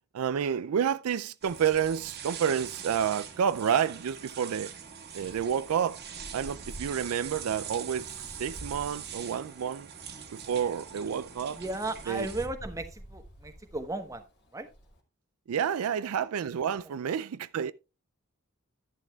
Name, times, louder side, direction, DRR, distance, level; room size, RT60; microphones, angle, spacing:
voice 1, 0.1-4.7 5.1-6.0 6.3-9.9 10.3-11.6 12.1-12.3 15.5-17.7, right 8 dB, 85° right, 0.4 m, -29 dB
sound 1, 1.4-12.5, right 7 dB, 50° right, 1.6 m, -43 dB
Wind, 5.1-15.0, equal, 55° left, 2.1 m, -49 dB
voice 2, 11.5-14.2 14.5-14.7, right 2 dB, 15° right, 1.1 m, -35 dB
11.0 x 11.0 x 2.3 m
head